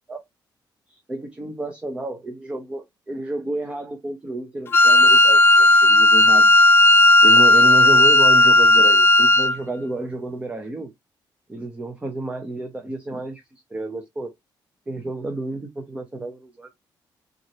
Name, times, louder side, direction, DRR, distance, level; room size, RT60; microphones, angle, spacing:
voice 1, 0.9-6.6 7.0-10.9 11.5-14.3 14.9-16.7, right 2 dB, 15° right, 0.7 m, -31 dB
Wind instrument woodwind instrument, 4.7-9.6, left 1 dB, 30° left, 0.4 m, -13 dB
3.9 x 3.1 x 4.1 m
cardioid pair, 165°, 8 cm